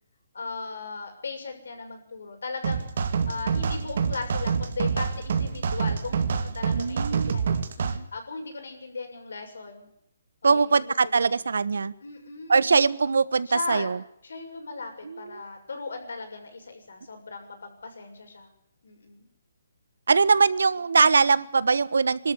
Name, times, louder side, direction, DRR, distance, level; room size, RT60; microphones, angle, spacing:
voice 1, 0.3-2.9 3.2-9.9 10.4-11.4 12.0-12.7 13.5-13.9 14.2-18.5 18.8-19.2, left 4 dB, 85° left, 4 dB, 6.7 m, -37 dB
sound 1, 2.6-8.0, right 6 dB, 55° right, 2.3 m, -27 dB
voice 2, 6.7-7.4 7.8-8.1 10.4-11.9 12.5-14.0 15.0-15.4 20.1-22.3, right 4 dB, 85° right, 17 dB, 1.2 m, -22 dB
23.5 x 13.0 x 9.8 m, 0.74 s
hypercardioid pair, 165°, 0 cm